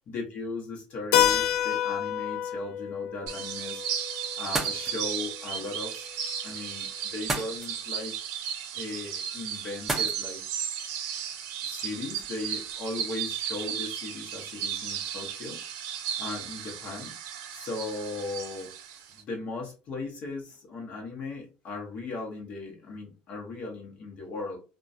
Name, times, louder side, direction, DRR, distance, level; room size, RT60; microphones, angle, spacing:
voice 1, 0.1-3.8 4.4-5.9 6.4-8.1 8.7-10.4 11.6-15.6 16.2-17.1 17.5-18.7 19.2-24.6, left 3 dB, 50° left, 0 dB, 0.8 m, -37 dB
Keyboard (musical), 1.1-5.6, left 11 dB, 75° left, 0.3 m, -29 dB
sound 1, 3.3-19.2, right 8 dB, 80° right, 0.4 m, -35 dB
sound 2, 4.4-12.8, right 2 dB, 10° right, 0.5 m, -40 dB
2.2 x 2.1 x 2.5 m, 0.33 s
supercardioid pair, 115°, 3 cm